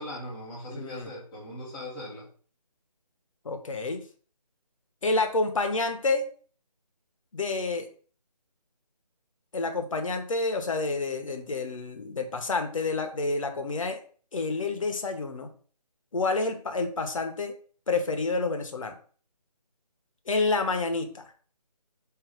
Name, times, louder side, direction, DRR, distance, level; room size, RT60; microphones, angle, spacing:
voice 1, 0.0-2.3, left 1 dB, 5° left, -10 dB, 0.7 m, -39 dB
voice 2, 0.7-1.1 3.4-4.0 5.0-6.2 7.3-7.9 9.5-14.0 14.3-15.5 16.1-17.5 17.9-18.9 20.3-21.2, left 3 dB, 50° left, 5 dB, 0.9 m, -28 dB
3.8 x 2.7 x 4.8 m, 0.43 s
figure-of-eight pair, 160°, 21 cm